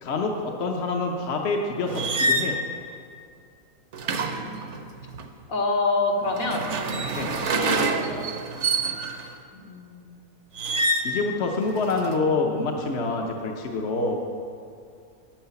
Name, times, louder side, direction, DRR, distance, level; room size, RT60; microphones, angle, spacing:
voice 1, 0.0-2.6 7.1-7.3 11.0-14.2, left 3 dB, 55° left, 1 dB, 1.1 m, -26 dB
sound 1, 1.9-2.6 3.9-5.3 6.3-9.3 10.6-11.2 11.6-12.2, right 2 dB, 60° right, 1.1 m, -27 dB
voice 2, 5.5-6.7 7.4-8.0 9.5-10.1, left 2 dB, 75° left, -1 dB, 2.0 m, -26 dB
10.5 x 8.3 x 7.0 m, 2.3 s
omnidirectional pair, 1.5 m